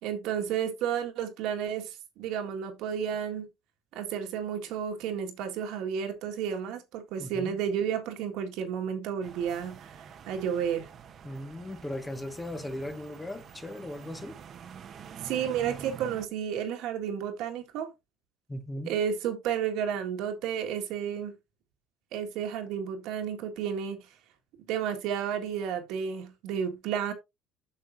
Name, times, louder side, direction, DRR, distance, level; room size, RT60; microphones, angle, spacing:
voice 1, 0.0-3.5 3.9-9.9 10.3-10.9 15.2-17.9 18.9-21.3 22.1-24.0 24.7-27.1, right 8 dB, 75° right, 1.9 m, -32 dB
voice 2, 7.2-7.6 11.2-14.4 18.5-19.0, left 1 dB, 15° left, 1.1 m, -38 dB
sound 1, 9.2-16.3, right 7 dB, 45° right, 1.0 m, -46 dB
9.7 x 6.6 x 2.7 m
cardioid pair, 135°, 0 cm